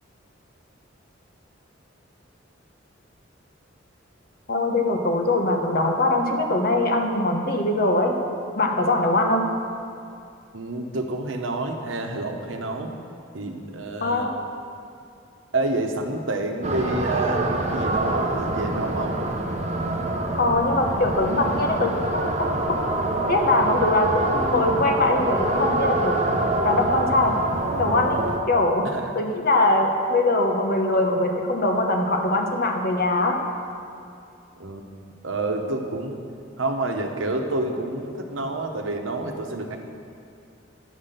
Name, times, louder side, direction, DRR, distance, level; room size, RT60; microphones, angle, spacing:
voice 1, 4.5-8.2 8.6-9.5 14.0-14.3 20.3-22.9 23.2-27.3 27.7-28.9 29.1-33.4, left 2 dB, 50° left, 3 dB, 1.0 m, -22 dB
voice 2, 10.5-12.9 13.3-14.3 15.5-19.2 28.9-29.1 34.6-34.8 35.2-36.2 36.6-39.8, right 2 dB, 90° right, 4 dB, 0.9 m, -28 dB
sound 1, 16.6-28.4, right 2 dB, 35° right, 0.7 m, -26 dB
9.6 x 5.8 x 6.8 m, 2.5 s
head